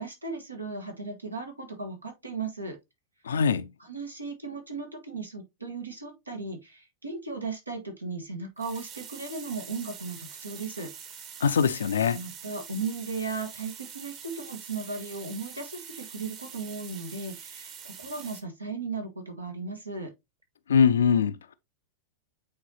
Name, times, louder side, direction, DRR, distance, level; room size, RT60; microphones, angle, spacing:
voice 1, 0.0-2.8 3.8-10.9 12.1-20.1, right 4 dB, 80° right, 1.6 m, -36 dB
voice 2, 3.3-3.7 11.4-12.2 20.7-21.3, left 6 dB, 65° left, 0.5 m, -22 dB
sound 1, 8.6-18.4, right 7 dB, 40° right, 1.4 m, -45 dB
8.5 x 4.0 x 2.9 m
figure-of-eight pair, 90°, 0 cm